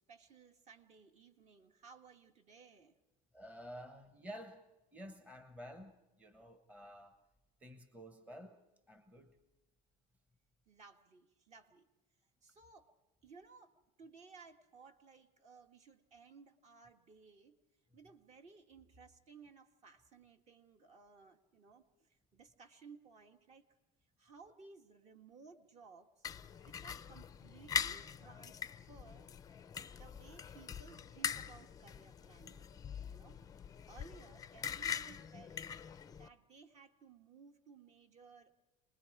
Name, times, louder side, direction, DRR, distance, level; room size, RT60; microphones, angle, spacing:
voice 1, 0.0-3.0 10.7-11.9 12.4-12.9 13.2-17.6 17.9-23.7 24.2-26.3 26.7-29.3 29.9-32.7 33.1-33.4 33.9-35.7 36.1-38.6, right 5 dB, 40° right, 5 dB, 1.8 m, -59 dB
voice 2, 3.3-4.7 4.9-7.2 7.6-8.6 8.9-9.4 33.0-33.1 36.1-36.2, equal, 10° right, 8 dB, 1.2 m, -51 dB
sound 1, 26.2-36.3, left 8 dB, 20° left, 0.6 m, -43 dB
28.0 x 20.5 x 4.8 m, 1.0 s
supercardioid pair, 135°, 18 cm